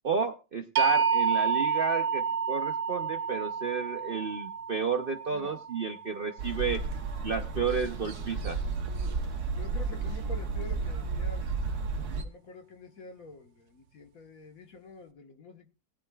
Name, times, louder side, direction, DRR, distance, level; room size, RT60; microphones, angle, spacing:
voice 1, 0.0-6.8 7.2-8.6, right 5 dB, 50° right, 0.7 m, -32 dB
sound 1, 0.8-6.7, right 6 dB, 85° right, 1.5 m, -29 dB
voice 2, 5.3-5.6 9.6-11.5 12.2-15.7, left 3 dB, 55° left, 1.7 m, -47 dB
sound 2, 6.4-12.2, right 4 dB, 65° right, 1.7 m, -32 dB
19.5 x 10.5 x 2.4 m
omnidirectional pair, 1.8 m